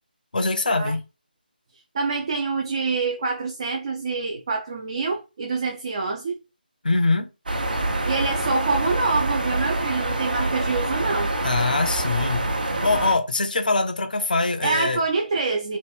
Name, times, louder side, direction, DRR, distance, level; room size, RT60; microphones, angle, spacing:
voice 1, 0.3-1.0 6.8-7.3 11.4-12.5 12.8-15.0, left 3 dB, 55° left, 0.7 m, -23 dB
voice 2, 1.9-6.4 8.1-11.3 14.6-15.8, right 4 dB, 35° right, 0.5 m, -26 dB
sound 1, 7.5-13.1, right 2 dB, 60° right, 0.9 m, -26 dB
3.1 x 2.6 x 3.3 m
figure-of-eight pair, 155°, 5 cm